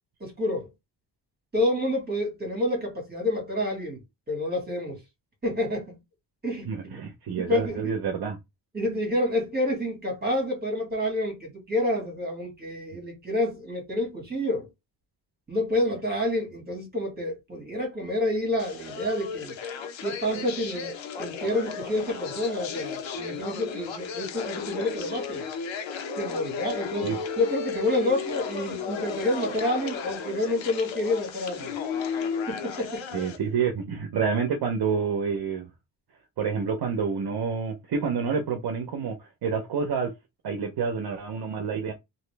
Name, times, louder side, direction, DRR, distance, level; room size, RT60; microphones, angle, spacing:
voice 1, 0.2-0.7 1.5-4.0 4.3-5.0 5.4-6.0 6.4-7.0 7.3-7.9 8.7-14.7 15.5-19.5 20.0-25.4 26.2-31.7 32.5-33.1, left 1 dB, 20° right, 1.8 m, -28 dB
voice 2, 6.7-8.4 27.0-27.2 33.1-35.7 36.4-40.1 40.4-41.9, right 6 dB, 55° right, 0.7 m, -28 dB
sound 1, 18.6-33.4, left 6 dB, 75° left, 0.9 m, -34 dB
3.0 x 2.7 x 3.2 m
wide cardioid pair, 130°, 45 cm